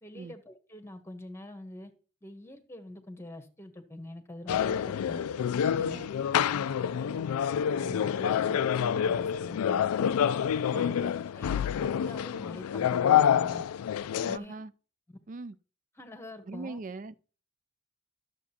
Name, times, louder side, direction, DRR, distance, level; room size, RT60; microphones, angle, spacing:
voice 1, 0.0-1.9 2.2-5.2 5.8-10.2 10.8-13.6 14.2-14.6 15.1-15.2 16.0-16.8, left 1 dB, 10° left, 1.0 m, -45 dB
sound 1, 4.5-14.4, left 8 dB, 85° left, 0.3 m, -27 dB
voice 2, 5.8-6.5 10.7-11.0 14.2-14.7 15.3-15.6 16.5-17.1, right 3 dB, 35° right, 0.4 m, -41 dB
12.5 x 7.2 x 2.8 m
head